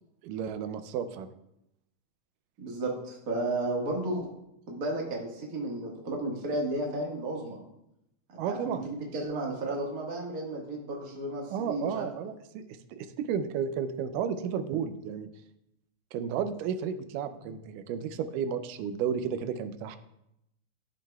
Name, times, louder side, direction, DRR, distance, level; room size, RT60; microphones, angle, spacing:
voice 1, 0.2-1.3 8.4-8.9 11.5-12.6 12.9-15.3 16.1-20.0, right 7 dB, 85° right, 10 dB, 2.2 m, -32 dB
voice 2, 2.6-4.3 4.7-7.6 8.3-12.1 17.4-17.5, right 2 dB, 40° right, -1 dB, 1.4 m, -33 dB
13.0 x 7.5 x 2.3 m, 0.82 s
omnidirectional pair, 3.7 m